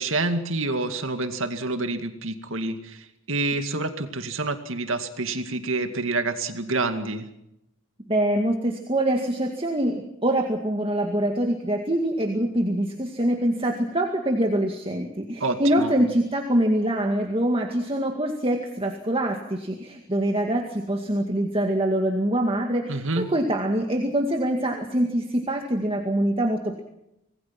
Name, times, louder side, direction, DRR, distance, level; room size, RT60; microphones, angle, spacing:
voice 1, 0.0-7.3 15.4-15.9 22.9-23.3, right 2 dB, 65° right, 7 dB, 2.2 m, -28 dB
voice 2, 8.1-26.8, right 1 dB, 25° right, 2 dB, 2.0 m, -24 dB
26.5 x 20.0 x 6.0 m, 0.83 s
head